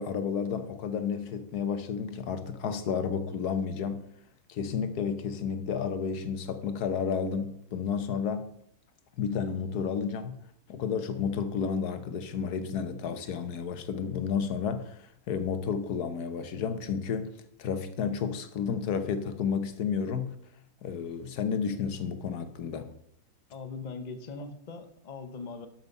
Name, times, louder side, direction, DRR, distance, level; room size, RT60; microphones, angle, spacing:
voice 1, 0.0-4.0 4.5-8.6 9.2-10.4 10.7-20.3 20.8-22.9, left 6 dB, 90° left, 1.5 m, -31 dB
voice 2, 23.5-25.7, left 4 dB, 35° left, 0.9 m, -40 dB
12.5 x 6.0 x 5.3 m
omnidirectional pair, 1.6 m